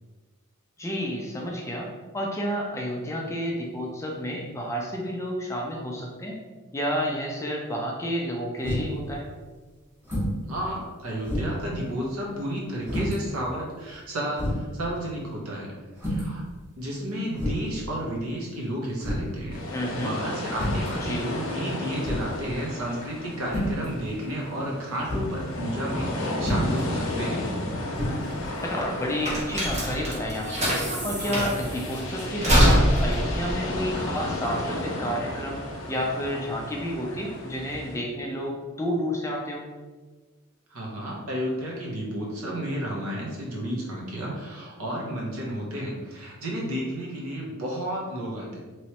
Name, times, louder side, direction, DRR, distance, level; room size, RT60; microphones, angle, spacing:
voice 1, 0.8-1.9 2.1-6.4 6.7-9.3 19.7-20.1 21.0-21.3 28.6-35.6 35.9-39.7, equal, 15° left, -1 dB, 0.4 m, -30 dB
sound 1, 8.6-9.0 10.0-10.4 10.8-10.9 11.3-11.7 12.8-13.2 13.9-14.0 14.4-14.7 16.0-16.4 17.3-17.7 19.0-19.4 20.5-20.9 22.0-22.4 23.4-23.8 25.0-25.3 26.4-26.8 27.9-28.1, equal, 15° right, 1.5 m, -28 dB
voice 2, 10.5-15.7 16.0-16.4 16.8-19.6 20.0-27.5 40.7-48.6, equal, 75° right, -3 dB, 0.9 m, -32 dB
sound 2, 19.5-38.0, left 1 dB, 60° left, 0.7 m, -34 dB
sound 3, 28.0-34.8, equal, 30° right, 1.0 m, -24 dB
3.1 x 3.0 x 2.9 m, 1.3 s
head